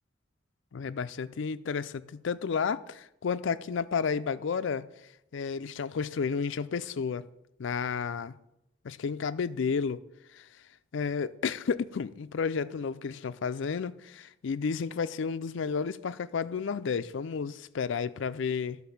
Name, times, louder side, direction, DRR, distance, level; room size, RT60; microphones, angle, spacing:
voice 1, 0.7-4.9 5.3-7.2 7.6-8.4 8.8-10.0 10.3-10.5 10.9-18.8, left 5 dB, 70° left, 0.4 m, -31 dB
12.0 x 4.1 x 7.0 m
head